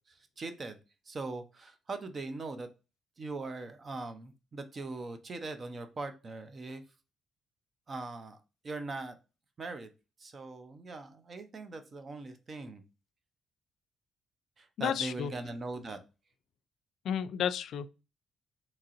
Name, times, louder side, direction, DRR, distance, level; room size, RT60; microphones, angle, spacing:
voice 1, 0.1-0.8 1.1-2.7 3.2-6.8 7.9-8.4 8.6-9.2 9.6-9.9 10.2-12.8 14.6-16.0, right 3 dB, 40° right, 0.6 m, -41 dB
voice 2, 14.8-15.3 17.0-17.9, left 8 dB, 70° left, 0.3 m, -32 dB
3.6 x 2.9 x 2.9 m
cardioid pair, 90°, 0 cm